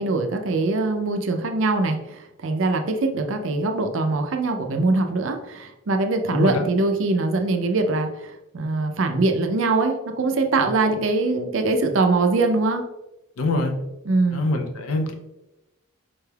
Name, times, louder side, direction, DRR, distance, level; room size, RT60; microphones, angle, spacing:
voice 1, 0.0-12.8 14.1-14.5, right 3 dB, 60° right, 5 dB, 0.5 m, -22 dB
voice 2, 6.3-6.6 13.4-13.7 14.3-15.1, left 2 dB, 75° left, 4 dB, 0.6 m, -24 dB
5.2 x 3.3 x 2.3 m, 0.97 s
head